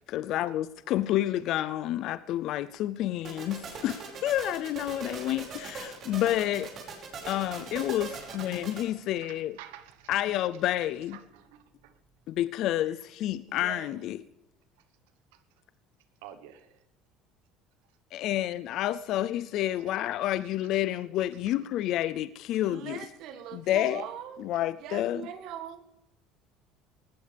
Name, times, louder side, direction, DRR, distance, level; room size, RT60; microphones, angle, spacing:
voice 1, 0.1-6.7 7.3-9.6 10.1-11.2 12.3-14.2 18.1-23.0 23.5-24.0 24.4-25.3, left 13 dB, 65° left, 0.5 m, -29 dB
sound 1, 3.2-8.8, right 5 dB, 50° right, 5.5 m, -40 dB
voice 2, 8.2-8.6 9.2-10.1 11.1-11.9 15.3-15.4 16.2-16.8 24.5-24.6, right 11 dB, 90° right, 1.2 m, -50 dB
voice 3, 13.5-14.0 22.6-24.4 24.7-25.8, right 9 dB, 65° right, 1.8 m, -41 dB
19.0 x 15.0 x 3.5 m
supercardioid pair, 105°, 0 cm